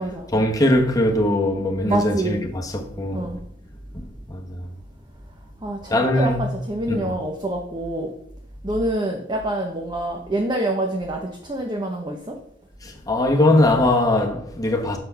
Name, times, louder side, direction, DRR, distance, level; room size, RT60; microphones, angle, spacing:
voice 1, 0.3-3.3 3.9-4.6 5.9-6.5 6.9-7.2 12.8-15.0, left 1 dB, 20° left, 1.1 m, -21 dB
voice 2, 1.9-2.4 3.1-3.4 5.6-8.1 8.6-12.4, right 1 dB, 25° right, 0.8 m, -26 dB
6.8 x 4.3 x 5.6 m
head